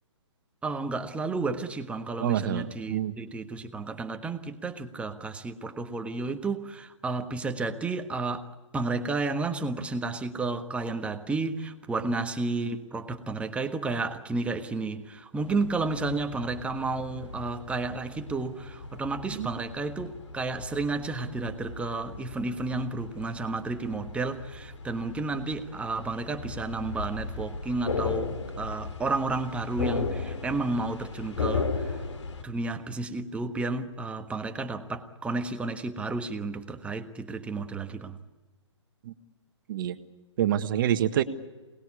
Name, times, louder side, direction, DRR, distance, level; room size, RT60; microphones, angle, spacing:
voice 1, 0.6-32.0 32.4-38.2, right 3 dB, 10° right, 1.4 m, -32 dB
voice 2, 2.2-3.1 12.2-12.3 19.4-19.5 39.1-39.2 39.7-40.0 40.4-41.2, right 11 dB, 45° right, 1.6 m, -27 dB
sound 1, 15.4-32.4, left 4 dB, 70° left, 2.5 m, -36 dB
27.5 x 20.0 x 8.5 m
figure-of-eight pair, 130°, 16 cm